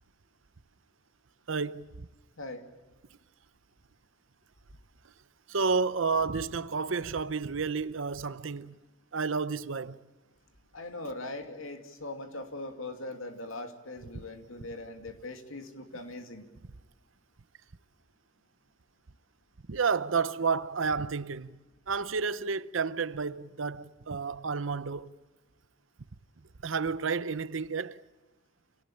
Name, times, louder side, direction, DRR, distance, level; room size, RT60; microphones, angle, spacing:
voice 1, 1.5-2.1 5.5-8.8 9.1-10.0 19.7-21.6 21.9-25.1 26.6-28.0, right 5 dB, 75° right, 0.8 m, -31 dB
voice 2, 10.7-16.5, left 2 dB, 85° left, 2.7 m, -40 dB
27.5 x 18.0 x 8.8 m
head